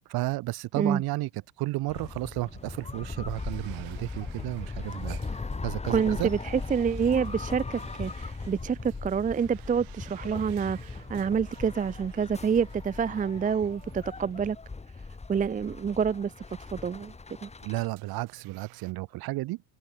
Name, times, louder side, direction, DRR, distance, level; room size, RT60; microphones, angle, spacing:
voice 1, 0.1-1.3 1.6-6.3 17.6-19.6, right 19 dB, 55° right, 2.9 m, -32 dB
sound 1, 1.9-17.9, left 3 dB, 15° left, 4.3 m, -39 dB
sound 2, 1.9-15.0 15.4-15.5 16.3-16.4 17.5-18.9, right 33 dB, 75° right, 5.3 m, -54 dB
voice 2, 5.9-14.6 15.3-16.3 16.7-17.1 17.4-17.5, right 7 dB, 20° right, 0.7 m, -27 dB
supercardioid pair, 100°, 43 cm